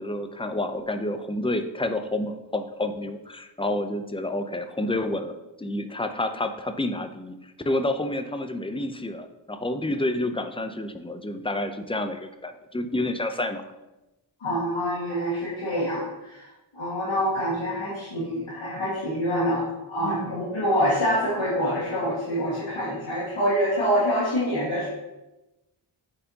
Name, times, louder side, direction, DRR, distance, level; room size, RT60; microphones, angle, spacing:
voice 1, 0.0-5.3 5.6-13.6, left 1 dB, 10° left, 7 dB, 0.4 m, -29 dB
voice 2, 14.4-16.5 16.7-24.9, equal, 75° left, -8 dB, 1.7 m, -26 dB
8.9 x 4.3 x 2.8 m, 1.0 s
wide cardioid pair, 75°, 48 cm